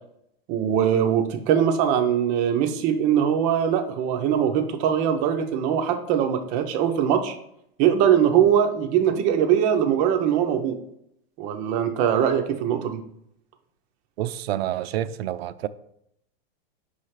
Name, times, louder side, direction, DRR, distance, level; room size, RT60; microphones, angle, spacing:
voice 1, 0.5-7.4 7.8-10.8 11.4-13.0, right 9 dB, 25° right, 0.5 m, -21 dB
voice 2, 14.2-15.7, right 12 dB, 85° right, 0.5 m, -28 dB
5.4 x 3.3 x 5.6 m
supercardioid pair, 160°, 30 cm